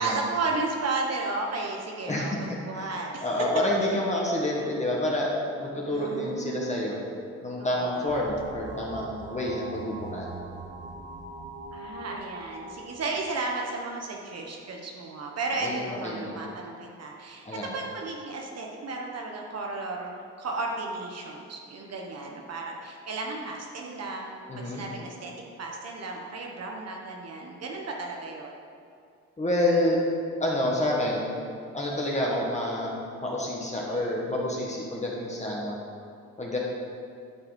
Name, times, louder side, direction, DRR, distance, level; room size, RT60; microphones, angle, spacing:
voice 1, 0.0-3.3 5.9-6.9 7.6-8.2 11.7-25.3 25.6-28.5, right 3 dB, 55° right, 0 dB, 1.3 m, -34 dB
voice 2, 3.2-5.3 5.6-7.0 7.4-10.3 15.6-16.4 17.4-17.7 24.5-24.8 29.4-30.0 30.4-31.3 31.7-35.8 36.4-36.6, left 1 dB, 25° left, -3 dB, 1.7 m, -28 dB
sound 1, 8.1-14.5, right 2 dB, 25° right, 1.0 m, -42 dB
11.5 x 5.8 x 5.3 m, 2.4 s
cardioid pair, 90°, 30 cm